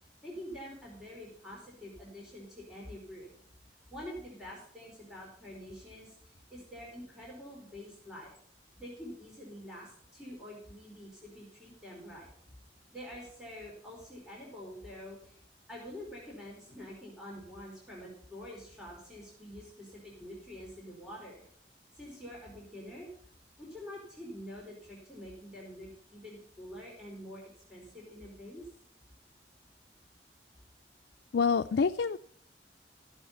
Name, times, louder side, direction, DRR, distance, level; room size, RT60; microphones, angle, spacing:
voice 1, 0.2-3.3 3.9-8.3 8.8-12.3 12.9-15.4 15.7-21.4 21.9-23.1 23.6-27.4 27.7-28.7, equal, 5° right, -5 dB, 3.9 m, -46 dB
voice 2, 31.3-32.2, left 5 dB, 80° left, 8 dB, 0.4 m, -27 dB
14.0 x 7.1 x 5.7 m, 0.62 s
head